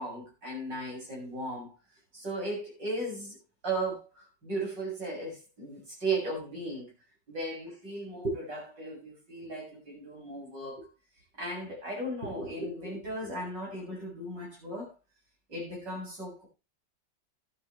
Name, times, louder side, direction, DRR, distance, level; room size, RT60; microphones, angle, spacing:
voice 1, 0.0-1.7 2.1-3.4 3.6-6.9 7.3-10.9 11.4-14.9 15.5-16.5, right 2 dB, 75° right, 8.2 m, -36 dB
13.5 x 11.5 x 3.3 m
omnidirectional pair, 1.9 m